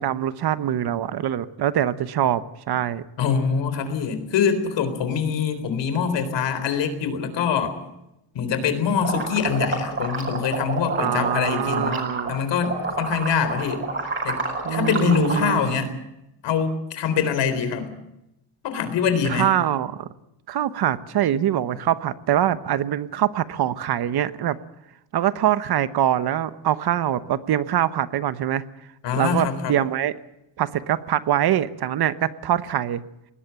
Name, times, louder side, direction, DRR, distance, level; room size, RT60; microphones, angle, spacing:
voice 1, 0.0-3.0 10.9-12.3 14.6-16.0 19.2-20.1 20.5-24.6 25.1-28.6 29.1-30.1 30.6-33.0, right 11 dB, 55° right, 14 dB, 1.1 m, -24 dB
voice 2, 3.2-7.8 8.3-12.0 12.3-13.8 14.2-14.4 14.7-15.9 16.4-17.9 18.6-19.5 29.0-29.8, left 6 dB, 65° left, 11 dB, 4.1 m, -24 dB
sound 1, 9.0-12.4 12.6-15.6, right 3 dB, 25° right, 7.6 m, -28 dB
20.0 x 17.5 x 9.0 m, 0.87 s
cardioid pair, 150°, 45 cm